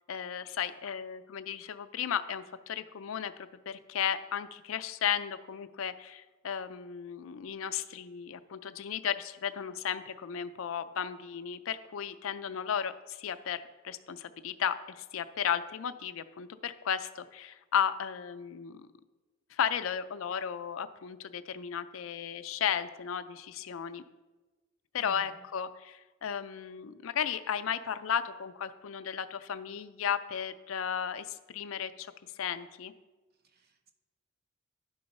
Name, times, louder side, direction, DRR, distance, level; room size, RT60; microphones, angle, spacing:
voice 1, 0.1-3.3 3.7-18.9 19.5-24.0 24.9-32.9, left 8 dB, 85° left, 12 dB, 0.4 m, -34 dB
voice 2, 25.0-25.4 33.4-33.9, right 2 dB, 50° right, 4 dB, 0.8 m, -57 dB
11.0 x 3.9 x 5.3 m, 1.2 s
head